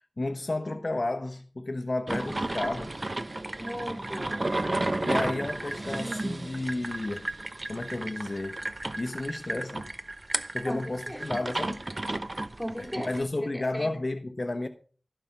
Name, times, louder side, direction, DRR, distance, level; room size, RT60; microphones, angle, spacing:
voice 1, 0.2-3.0 5.0-7.3 7.7-8.6 9.0-9.9 10.5-11.8 12.8-14.7, left 2 dB, 50° left, 1.0 m, -32 dB
sound 1, 2.1-13.2, right 2 dB, 45° right, 0.9 m, -33 dB
voice 2, 3.6-4.6 10.6-10.8 11.1-11.2 12.6-13.2 13.5-13.9, equal, 5° right, 4.2 m, -37 dB
15.5 x 5.8 x 5.8 m
wide cardioid pair, 70°, 0 cm